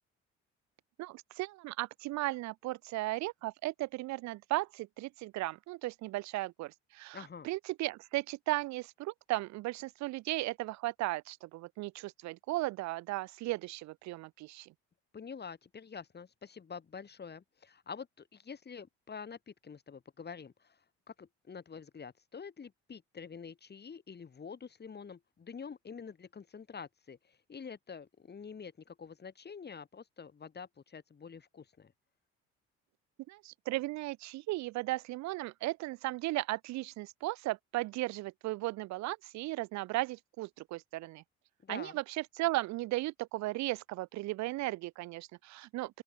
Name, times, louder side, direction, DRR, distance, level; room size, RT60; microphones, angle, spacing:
voice 1, 1.0-14.7 33.3-41.2 41.7-46.0, right 19 dB, 70° right, 0.9 m, -36 dB
voice 2, 7.1-7.5 15.1-20.8 21.1-31.9 41.6-42.0, left 6 dB, 35° left, 3.5 m, -47 dB
open air
supercardioid pair, 70°, 29 cm